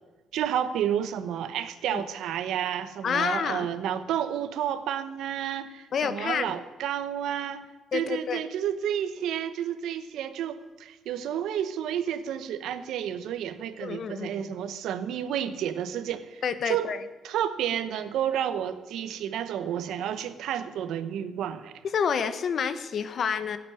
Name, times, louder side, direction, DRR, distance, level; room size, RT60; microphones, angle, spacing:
voice 1, 0.3-7.7 7.9-16.9 17.2-21.8, right 10 dB, 80° right, 12 dB, 1.0 m, -31 dB
voice 2, 3.0-3.7 5.9-6.5 7.9-8.4 13.8-14.4 16.4-17.0 21.9-23.6, left 6 dB, 55° left, 12 dB, 1.2 m, -28 dB
16.0 x 8.4 x 9.8 m, 1.2 s
cardioid pair, 90°, 0 cm